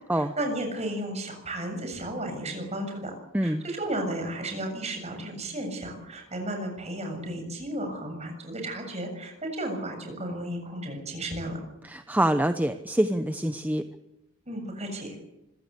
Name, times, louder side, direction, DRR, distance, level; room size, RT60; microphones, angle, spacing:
voice 1, 0.1-3.1 3.4-11.6 14.5-15.2, right 1 dB, 35° right, 4 dB, 7.1 m, -33 dB
voice 2, 11.8-13.8, right 1 dB, 10° right, 9 dB, 0.8 m, -25 dB
25.5 x 16.0 x 8.3 m, 0.94 s
head